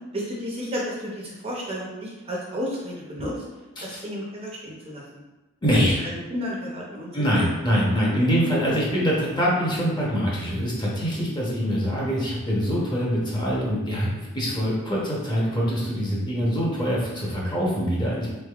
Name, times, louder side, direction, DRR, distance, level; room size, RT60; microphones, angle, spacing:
voice 1, 0.1-3.4 3.8-5.2 5.7-7.1 7.4-7.5 12.2-12.3, equal, 25° right, -3 dB, 0.5 m, -32 dB
voice 2, 5.6-6.1 7.1-18.3, equal, 20° left, -5 dB, 0.8 m, -24 dB
3.6 x 3.3 x 2.3 m, 1.1 s
head